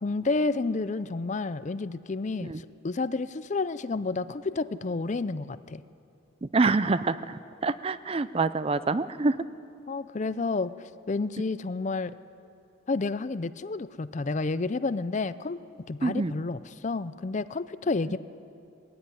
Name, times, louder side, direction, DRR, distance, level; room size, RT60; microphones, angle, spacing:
voice 1, 0.0-5.8 9.9-10.7 11.1-12.1 12.9-15.6 15.9-18.2, left 3 dB, 35° left, 15 dB, 0.4 m, -30 dB
voice 2, 6.4-9.4 16.0-16.3, right 3 dB, 30° right, 14 dB, 0.4 m, -26 dB
20.0 x 16.5 x 9.7 m, 2.6 s
head